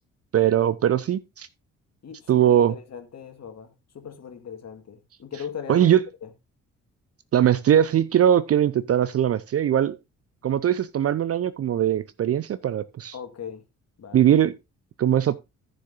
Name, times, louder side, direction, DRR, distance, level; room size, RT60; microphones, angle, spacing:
voice 1, 0.3-1.5 2.3-2.8 5.7-6.0 7.3-10.0 10.4-13.1 14.1-14.5 15.0-15.4, right 10 dB, 35° right, 0.6 m, -20 dB
voice 2, 2.0-5.9 6.2-6.3 13.1-13.6 14.0-14.3, left 7 dB, 40° left, 2.0 m, -39 dB
14.5 x 6.8 x 2.6 m
figure-of-eight pair, 40°, 40 cm